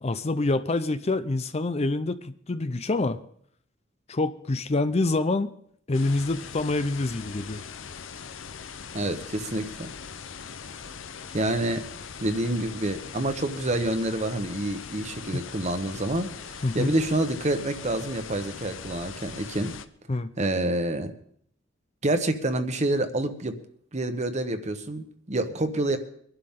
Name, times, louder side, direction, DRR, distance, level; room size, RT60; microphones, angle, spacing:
voice 1, 0.0-3.2 4.1-5.5 5.9-7.6 15.3-15.4 16.6-16.9 20.1-20.3, left 2 dB, 30° left, 12 dB, 0.5 m, -26 dB
sound 1, 5.9-19.9, left 6 dB, 75° left, 0.7 m, -41 dB
voice 2, 8.9-9.9 11.3-11.9 12.2-19.7 20.4-21.1 22.0-23.6 23.9-26.0, right 1 dB, 35° right, 8 dB, 1.2 m, -27 dB
23.0 x 11.5 x 3.8 m, 0.65 s
head